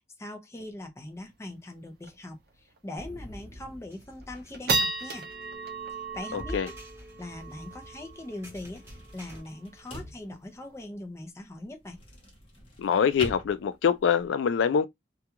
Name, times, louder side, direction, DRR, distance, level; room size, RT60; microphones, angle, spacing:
voice 1, 0.0-5.3 5.9-6.7 7.2-12.0, left 1 dB, 15° left, 0.5 m, -41 dB
sound 1, 1.2-1.3 1.5-1.6 2.0-2.3 2.8-2.9 3.4-3.8 4.2-10.8, right 3 dB, 55° right, 0.5 m, -35 dB
sound 2, 3.0-9.4, equal, 15° right, 0.9 m, -46 dB
sound 3, 5.5-14.3, left 1 dB, 30° left, 1.0 m, -46 dB
voice 2, 6.3-6.7 12.8-14.9, left 7 dB, 85° left, 0.3 m, -24 dB
2.3 x 2.2 x 2.8 m
head